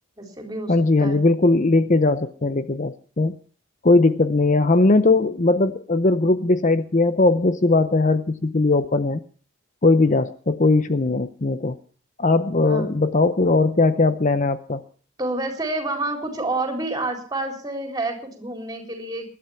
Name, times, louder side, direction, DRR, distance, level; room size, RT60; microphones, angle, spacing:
voice 1, 0.2-1.2 12.6-13.0 15.2-19.3, right 2 dB, 15° right, 3 dB, 4.1 m, -29 dB
voice 2, 0.7-3.4 3.8-9.2 9.8-11.8 12.2-14.8, left 2 dB, 35° left, 12 dB, 0.7 m, -19 dB
20.0 x 12.0 x 5.7 m, 0.43 s
head